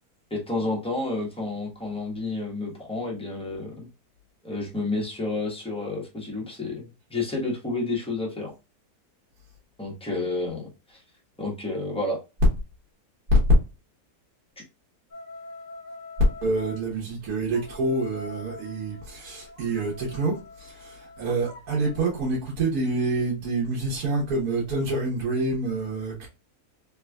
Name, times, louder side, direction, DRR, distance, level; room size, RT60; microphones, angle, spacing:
voice 1, 0.3-3.9 4.4-8.5 9.8-11.0 11.4-12.2, left 2 dB, 5° left, 1.0 m, -30 dB
sound 1, 15.1-16.9 17.5-22.0, left 2 dB, 35° left, 1.1 m, -44 dB
voice 2, 16.4-26.3, right 3 dB, 70° right, 1.6 m, -27 dB
3.4 x 3.2 x 2.3 m
omnidirectional pair, 1.7 m